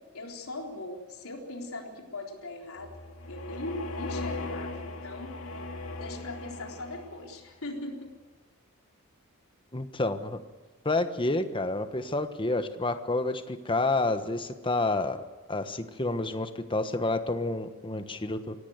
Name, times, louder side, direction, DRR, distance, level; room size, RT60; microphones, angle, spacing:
voice 1, 0.1-5.3 5.9-8.1 18.1-18.2, left 2 dB, 85° left, 1 dB, 3.9 m, -40 dB
sound 1, 2.8-7.4, left 2 dB, 70° left, 2.5 m, -38 dB
voice 2, 9.7-10.4 10.8-15.2 15.5-18.5, left 2 dB, 25° left, 9 dB, 1.3 m, -29 dB
24.5 x 17.5 x 8.0 m, 1.3 s
head